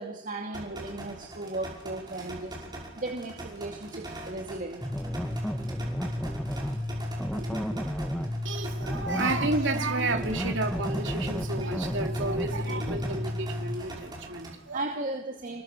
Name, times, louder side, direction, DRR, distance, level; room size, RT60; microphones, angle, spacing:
voice 1, 0.0-2.6 3.0-4.8 14.2-14.3 14.7-15.6, right 2 dB, 40° right, 1 dB, 2.5 m, -36 dB
sound 1, 0.5-14.5, right 1 dB, 20° right, 5.7 m, -42 dB
sound 2, 4.8-13.8, left 1 dB, 5° left, 1.1 m, -32 dB
voice 2, 8.4-14.8, right 2 dB, 60° right, 4 dB, 3.2 m, -31 dB
27.5 x 22.5 x 6.8 m, 0.86 s
head